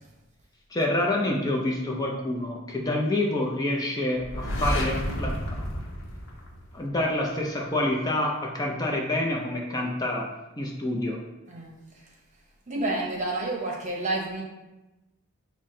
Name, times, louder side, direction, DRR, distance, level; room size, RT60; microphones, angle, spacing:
voice 1, 0.7-5.6 6.7-10.2 10.6-11.2, left 1 dB, 20° left, -1 dB, 0.4 m, -27 dB
sound 1, 4.2-7.0, equal, 65° left, 0.9 m, -31 dB
voice 2, 11.5-12.0 12.7-14.4, right 2 dB, 35° right, -1 dB, 0.8 m, -30 dB
5.7 x 2.1 x 3.7 m, 1.0 s
head